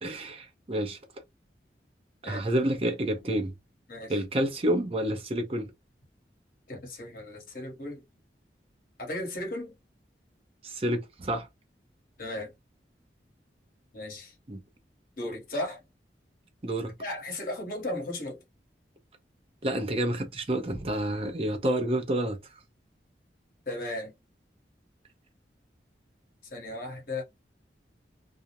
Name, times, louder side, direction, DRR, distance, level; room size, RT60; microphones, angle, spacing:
voice 1, 0.0-1.0 2.2-3.5 4.1-5.7 10.6-11.5 14.5-14.6 16.6-16.9 19.6-22.4, right 1 dB, 35° right, 0.6 m, -29 dB
voice 2, 6.7-8.0 9.0-9.7 12.2-12.5 13.9-14.3 15.2-15.8 17.0-18.4 23.7-24.1 26.5-27.2, left 1 dB, 55° left, 1.0 m, -35 dB
2.4 x 2.0 x 2.8 m
head